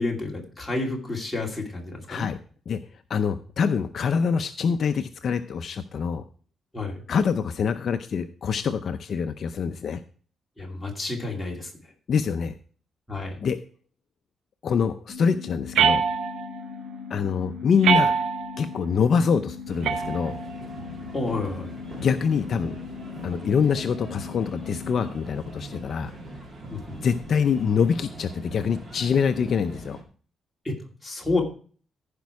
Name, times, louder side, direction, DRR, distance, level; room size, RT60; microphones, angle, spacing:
voice 1, 0.0-2.3 6.7-7.0 10.6-11.7 13.1-13.4 21.1-21.7 26.7-27.0 30.6-30.8 31.0-31.4, left 2 dB, 5° left, -2 dB, 2.5 m, -30 dB
voice 2, 2.7-6.2 7.1-10.0 12.1-12.5 13.4-13.6 14.6-16.0 17.1-18.1 18.6-20.4 22.0-22.7 23.2-26.1 27.0-30.0, left 6 dB, 50° left, 8 dB, 0.5 m, -25 dB
sound 1, 15.1-25.1, left 6 dB, 25° left, 6.0 m, -39 dB
sound 2, 15.7-16.6 17.8-18.6 19.8-20.7, right 7 dB, 80° right, 0.9 m, -23 dB
sound 3, 19.7-30.0, right 1 dB, 35° right, 2.2 m, -41 dB
15.0 x 5.3 x 4.7 m, 0.43 s
wide cardioid pair, 155°, 0 cm